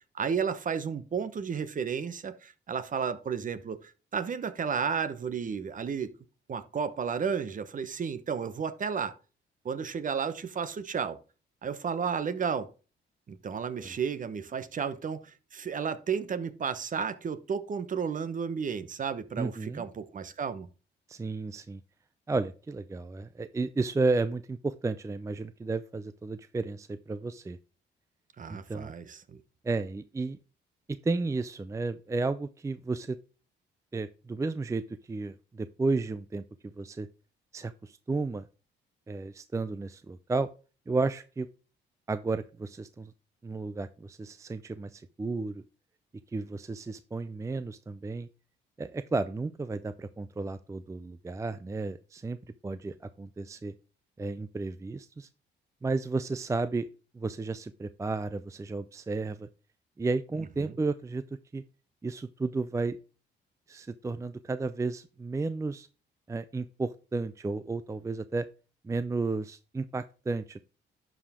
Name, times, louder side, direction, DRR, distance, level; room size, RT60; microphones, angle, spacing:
voice 1, 0.1-6.1 6.5-9.2 9.6-11.2 11.6-12.7 13.3-20.7 28.4-29.4 60.6-60.7, right 6 dB, 40° right, 0.9 m, -33 dB
voice 2, 19.4-19.8 21.1-21.8 22.3-27.6 28.5-28.9 29.6-30.4 31.0-33.2 33.9-36.4 36.8-37.1 37.5-38.5 39.1-40.5 40.9-41.5 42.1-43.1 43.4-45.6 46.3-48.3 48.8-52.4 52.6-53.7 54.2-55.3 55.8-56.9 57.1-59.5 60.0-61.2 61.5-61.6 62.0-63.0 63.7-65.9 66.3-68.5 68.8-70.6, right 3 dB, 15° right, 0.4 m, -33 dB
11.0 x 5.0 x 3.6 m
cardioid pair, 90°, 20 cm